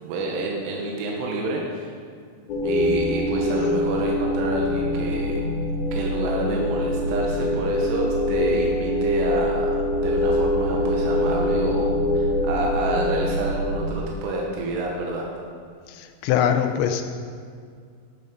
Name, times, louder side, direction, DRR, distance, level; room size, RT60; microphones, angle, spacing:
voice 1, 0.0-1.9 2.6-5.4 5.9-9.7 10.0-11.9 12.1-15.2, right 2 dB, 70° right, -1 dB, 3.1 m, -28 dB
sound 1, 2.5-13.9, left 1 dB, 65° left, 2.8 m, -24 dB
voice 2, 15.9-17.1, left 9 dB, 80° left, 7 dB, 2.9 m, -23 dB
12.0 x 9.3 x 5.3 m, 2.2 s
omnidirectional pair, 5.3 m